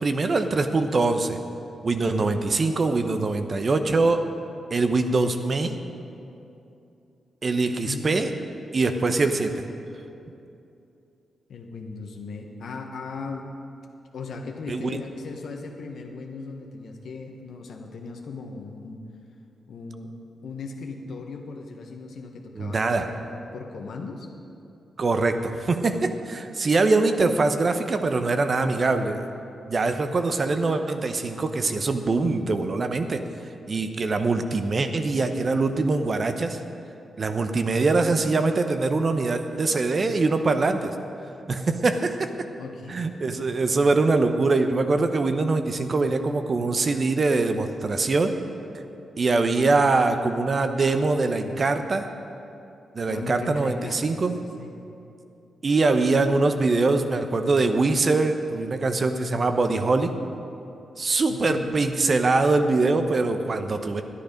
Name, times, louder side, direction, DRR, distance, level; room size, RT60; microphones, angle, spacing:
voice 1, 0.0-1.4 1.8-4.2 4.7-5.8 7.4-8.3 8.7-9.6 14.7-15.0 22.6-23.1 25.0-29.2 29.7-33.2 33.7-36.6 37.2-40.9 41.5-42.3 42.9-48.3 49.2-52.1 52.9-54.3 55.6-60.1 61.0-64.0, right 3 dB, 50° right, 7 dB, 0.9 m, -23 dB
voice 2, 7.6-8.1 11.5-13.5 14.1-19.0 19.7-20.1 20.4-24.3 42.6-43.0 53.1-54.2 54.6-54.7 61.3-61.7, left 4 dB, 75° left, 3 dB, 1.2 m, -37 dB
11.5 x 10.5 x 5.1 m, 2.7 s
supercardioid pair, 50°, 0 cm